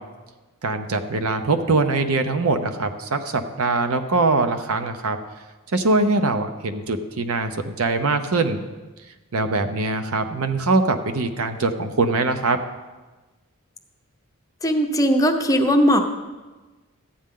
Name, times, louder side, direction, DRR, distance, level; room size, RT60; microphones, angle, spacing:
voice 1, 0.6-5.2 5.7-8.6 9.3-12.6, right 3 dB, 75° right, 8 dB, 0.8 m, -22 dB
voice 2, 14.6-16.0, equal, 15° left, 4 dB, 0.7 m, -18 dB
14.0 x 8.7 x 3.7 m, 1.2 s
head